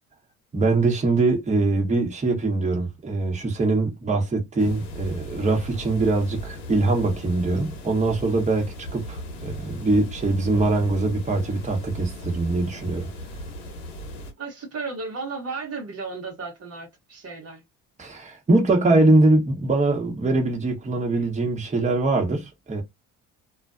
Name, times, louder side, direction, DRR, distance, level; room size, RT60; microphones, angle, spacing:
voice 1, 0.5-8.7 8.9-13.1 18.0-22.8, right 2 dB, 20° right, 1.1 m, -22 dB
sound 1, 4.6-14.3, equal, 85° left, 1.0 m, -38 dB
voice 2, 14.4-17.6, right 4 dB, 40° right, 1.0 m, -34 dB
2.4 x 2.3 x 2.5 m
supercardioid pair, 80°, 36 cm